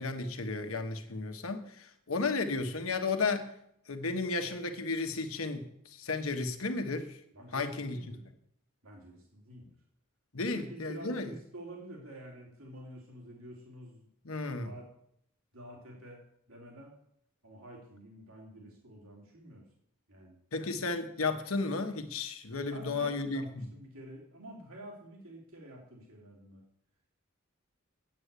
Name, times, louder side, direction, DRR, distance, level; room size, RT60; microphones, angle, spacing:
voice 1, 0.0-3.5 3.9-7.2 7.5-8.0 10.3-11.3 14.2-14.7 20.5-23.6, left 3 dB, 85° left, 7 dB, 1.3 m, -33 dB
voice 2, 7.3-8.2 8.8-9.7 10.5-14.1 14.6-14.9 15.5-16.2 16.5-16.9 17.4-19.6 20.1-20.4 22.7-26.6, right 1 dB, 85° right, -1 dB, 2.8 m, -49 dB
8.8 x 8.1 x 8.3 m, 0.73 s
head